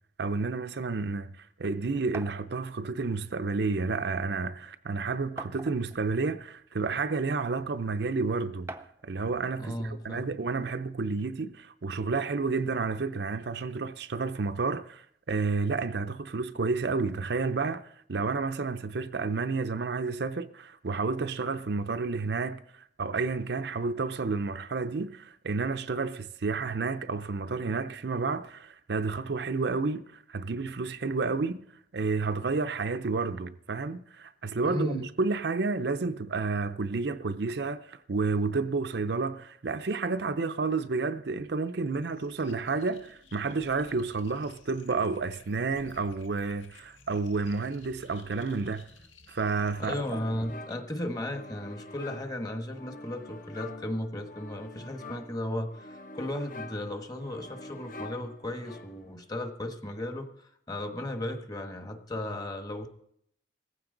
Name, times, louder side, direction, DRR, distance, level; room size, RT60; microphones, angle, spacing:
voice 1, 0.2-8.7 9.0-22.6 23.0-31.7 31.9-48.9 49.3-50.0, right 4 dB, 60° right, 0.6 m, -30 dB
sound 1, 2.1-2.4 3.6-3.7 4.1-4.2 5.4-6.0 6.9-7.0 8.7-9.1, right 2 dB, 15° right, 0.6 m, -42 dB
voice 2, 9.6-10.2 34.6-35.0 49.8-62.9, left 1 dB, 20° left, 1.3 m, -35 dB
sound 2, 41.8-50.2, left 4 dB, 90° left, 1.7 m, -56 dB
sound 3, 49.7-59.2, left 2 dB, 45° left, 1.0 m, -46 dB
18.0 x 15.0 x 3.9 m
head